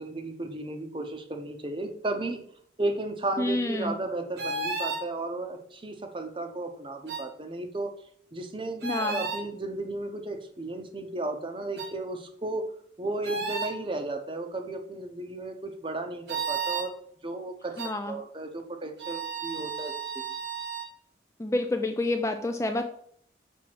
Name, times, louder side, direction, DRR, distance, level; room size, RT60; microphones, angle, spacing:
voice 1, 0.0-2.4 2.8-7.9 8.3-12.7 13.0-16.9 17.2-17.8 18.1-19.9, right 2 dB, 25° right, 5 dB, 0.8 m, -34 dB
voice 2, 3.4-3.9 8.8-9.2 17.8-18.2 21.4-22.8, left 2 dB, 15° left, 6 dB, 0.4 m, -28 dB
sound 1, 4.4-5.1 7.1-7.3 8.8-9.4 11.8-11.9 13.2-13.8 16.3-16.9 17.8-17.9 19.0-20.9, right 4 dB, 65° right, 1.3 m, -33 dB
6.2 x 3.5 x 6.0 m, 0.62 s
head